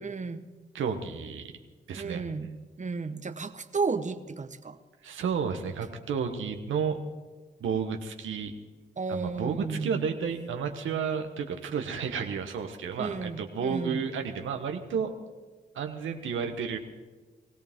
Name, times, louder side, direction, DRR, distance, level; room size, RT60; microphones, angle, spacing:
voice 1, 0.0-0.4 1.9-2.5 2.8-4.8 9.0-10.1 13.0-14.0, right 4 dB, 40° right, 10 dB, 1.0 m, -33 dB
voice 2, 0.7-1.5 1.9-2.3 5.0-7.0 7.6-8.5 9.1-15.2 15.7-16.8, right 6 dB, 90° right, 5 dB, 1.1 m, -31 dB
20.0 x 16.5 x 3.6 m, 1.3 s
supercardioid pair, 40°, 20 cm